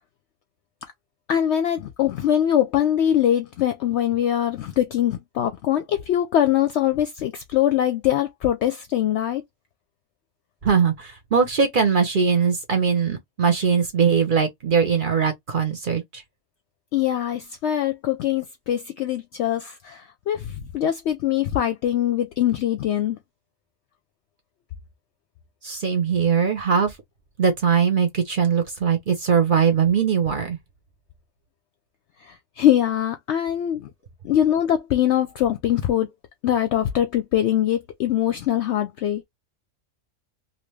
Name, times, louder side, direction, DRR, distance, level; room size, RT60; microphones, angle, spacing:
voice 1, 1.3-9.4 16.9-23.2 32.2-33.9 34.2-36.1 36.4-39.2, left 11 dB, 65° left, 0.8 m, -22 dB
voice 2, 10.6-16.2 25.6-26.9 27.4-30.6, right 6 dB, 45° right, 0.9 m, -21 dB
2.8 x 2.5 x 3.1 m
omnidirectional pair, 1.4 m